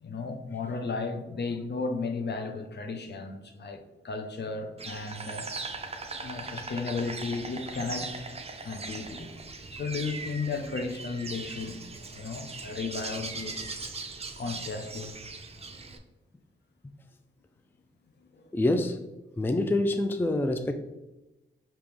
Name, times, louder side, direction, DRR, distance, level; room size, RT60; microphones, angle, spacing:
voice 1, 0.0-5.5 6.2-8.1 8.6-9.4 9.7-11.8 12.1-13.8 14.4-15.1 18.3-18.6, left 4 dB, 55° left, 5 dB, 0.7 m, -34 dB
Insect, 4.8-16.0, right 3 dB, 30° right, 0.6 m, -39 dB
voice 2, 18.5-19.0 19.4-20.7, left 2 dB, 10° left, 6 dB, 0.4 m, -26 dB
5.0 x 3.0 x 3.5 m, 0.99 s
cardioid pair, 50°, 21 cm